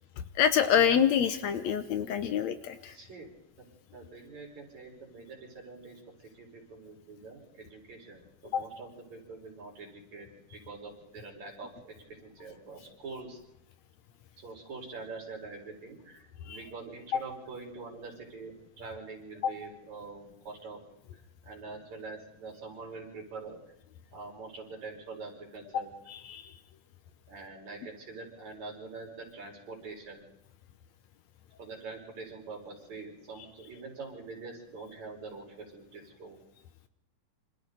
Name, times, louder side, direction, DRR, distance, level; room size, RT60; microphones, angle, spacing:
voice 1, 0.4-2.9 8.5-8.6 16.5-16.6 17.1-17.2 19.4-19.5 25.7-25.8 26.1-26.5, left 8 dB, 70° left, 9 dB, 2.1 m, -26 dB
voice 2, 2.8-3.3 3.6-3.7 3.9-13.4 14.4-20.8 21.4-23.6 24.1-25.9 27.3-30.2 31.6-36.4, right 4 dB, 65° right, 0 dB, 6.1 m, -45 dB
27.0 x 26.0 x 4.0 m, 0.82 s
omnidirectional pair, 3.5 m